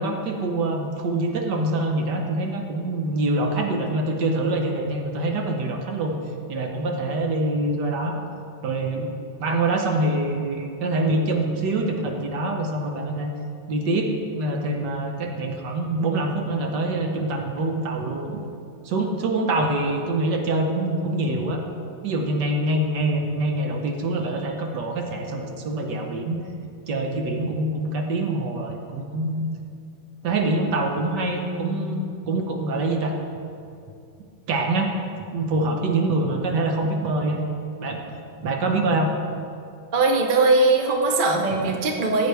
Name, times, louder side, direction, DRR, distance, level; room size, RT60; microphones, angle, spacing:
voice 1, 0.0-6.2 6.5-8.2 8.6-9.1 9.4-13.3 13.7-18.3 18.8-21.6 22.0-26.4 26.9-29.5 30.2-33.1 34.5-34.9 35.3-37.4 37.8-38.0 38.4-39.1, right 2 dB, 65° right, 3 dB, 1.5 m, -25 dB
voice 2, 39.9-42.3, right 3 dB, 45° right, 2 dB, 0.6 m, -20 dB
15.0 x 8.1 x 3.4 m, 2.4 s
omnidirectional pair, 2.1 m